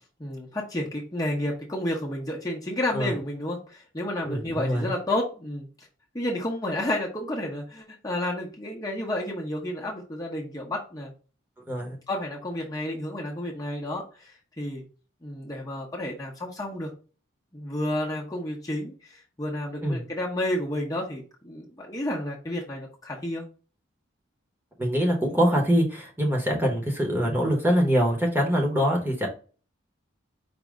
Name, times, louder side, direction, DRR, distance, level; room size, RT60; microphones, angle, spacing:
voice 1, 0.2-5.9 6.1-11.1 12.1-14.8 15.2-16.9 17.5-23.4, left 1 dB, 20° left, -2 dB, 0.9 m, -31 dB
voice 2, 4.2-4.9 11.7-12.0 19.8-20.0 24.8-29.3, equal, 10° right, 0 dB, 1.0 m, -24 dB
5.1 x 2.7 x 3.5 m, 0.36 s
head